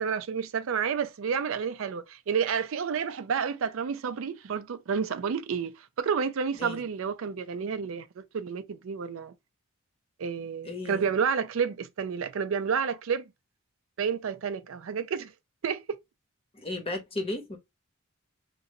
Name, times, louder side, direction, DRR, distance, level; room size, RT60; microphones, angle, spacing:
voice 1, 0.0-9.3 10.2-13.3 14.0-15.3 15.6-16.0, right 6 dB, 75° right, 0.4 m, -30 dB
voice 2, 10.6-11.1 16.5-17.6, left 2 dB, 30° left, 0.8 m, -34 dB
3.0 x 2.6 x 2.7 m
head